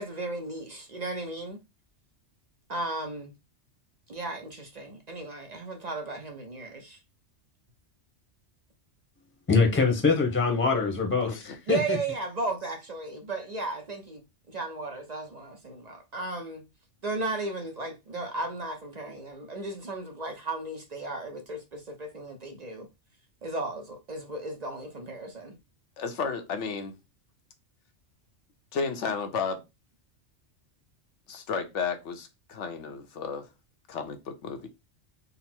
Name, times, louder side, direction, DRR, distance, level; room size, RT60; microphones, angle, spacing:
voice 1, 0.0-1.6 2.7-3.3 4.1-7.0 11.7-14.2 14.5-16.6 17.0-22.9 23.4-25.6, right 2 dB, 45° right, 0.6 m, -35 dB
voice 2, 9.5-12.0, left 4 dB, 10° left, 0.8 m, -24 dB
voice 3, 11.2-11.6 26.0-26.9 28.7-29.6 31.3-33.5 33.9-34.7, left 5 dB, 75° left, 1.1 m, -33 dB
3.9 x 2.0 x 4.3 m
omnidirectional pair, 1.2 m